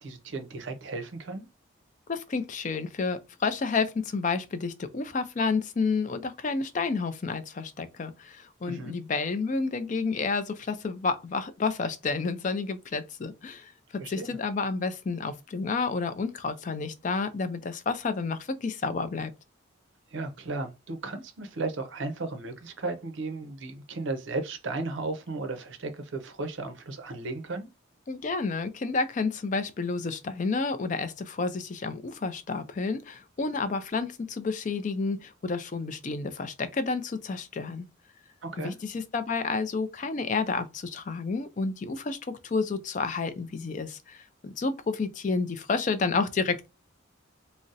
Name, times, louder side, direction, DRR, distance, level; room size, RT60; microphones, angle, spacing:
voice 1, 0.0-1.5 8.7-9.0 14.0-14.4 20.1-27.7 38.4-38.7, right 3 dB, 65° right, 0.5 m, -35 dB
voice 2, 2.1-19.3 28.1-37.8 38.6-46.7, left 4 dB, 40° left, 0.4 m, -30 dB
2.5 x 2.0 x 3.9 m
head